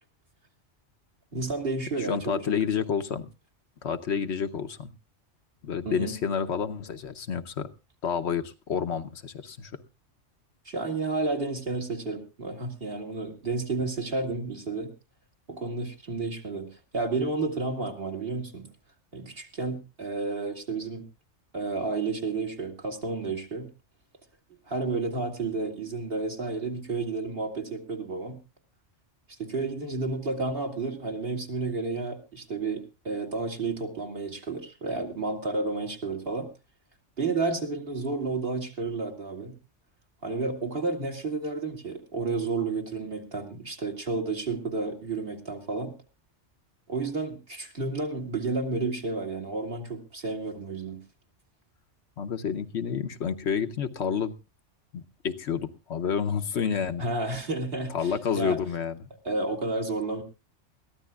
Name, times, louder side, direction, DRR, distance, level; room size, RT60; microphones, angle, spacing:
voice 1, 1.3-2.6 5.9-6.2 10.7-14.9 15.5-18.7 19.1-21.0 21.5-23.7 24.7-28.4 29.3-36.5 37.2-39.6 40.2-45.9 46.9-51.0 57.0-58.6 59.2-60.2, right 3 dB, 50° right, 2 dB, 2.2 m, -31 dB
voice 2, 2.0-3.3 3.8-4.9 5.6-7.7 8.0-9.7 52.2-54.3 54.9-57.0 57.9-59.0, left 7 dB, 65° left, 9 dB, 1.1 m, -29 dB
21.5 x 14.5 x 2.3 m, 0.28 s
omnidirectional pair, 1.3 m